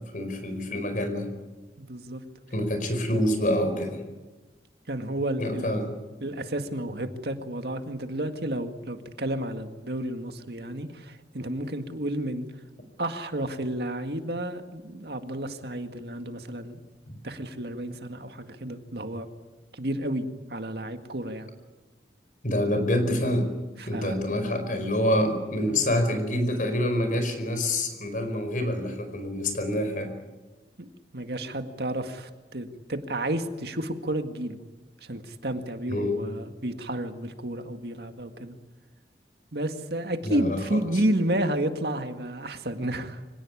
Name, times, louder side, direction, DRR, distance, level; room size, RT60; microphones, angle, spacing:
voice 1, 0.1-1.3 2.5-4.0 5.4-5.9 17.1-17.2 22.4-23.5 23.9-30.1 35.9-36.2 40.2-41.0, left 1 dB, 50° left, 8 dB, 5.0 m, -27 dB
voice 2, 1.8-2.2 4.9-5.7 6.2-12.5 13.0-16.8 17.2-19.3 19.7-21.5 23.8-24.2 25.6-25.9 30.8-34.6 35.0-38.6 39.5-43.2, right 1 dB, 65° right, 7 dB, 2.0 m, -31 dB
25.5 x 18.0 x 9.9 m, 1.2 s
head